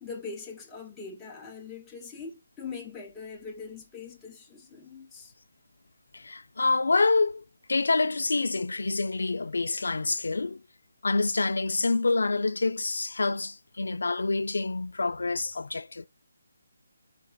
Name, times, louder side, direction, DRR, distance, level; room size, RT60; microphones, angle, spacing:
voice 1, 0.0-5.3, left 5 dB, 5° left, 0.5 m, -42 dB
voice 2, 6.1-7.4 7.7-10.6 11.0-16.1, left 3 dB, 80° left, 0.4 m, -27 dB
4.1 x 3.4 x 2.2 m
hypercardioid pair, 175°, 0 cm